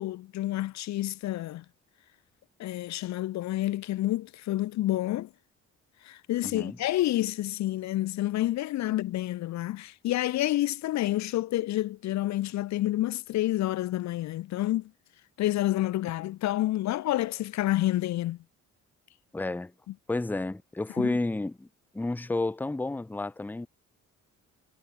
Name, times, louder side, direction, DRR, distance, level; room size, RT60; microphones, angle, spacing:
voice 1, 0.0-1.6 2.6-5.3 6.0-14.9 15.4-18.4 21.0-21.2, left 15 dB, 65° left, 0.5 m, -29 dB
voice 2, 6.4-6.8 19.3-19.7 20.1-21.7 21.9-23.7, left 2 dB, 5° left, 0.6 m, -31 dB
cardioid pair, 90°, 30 cm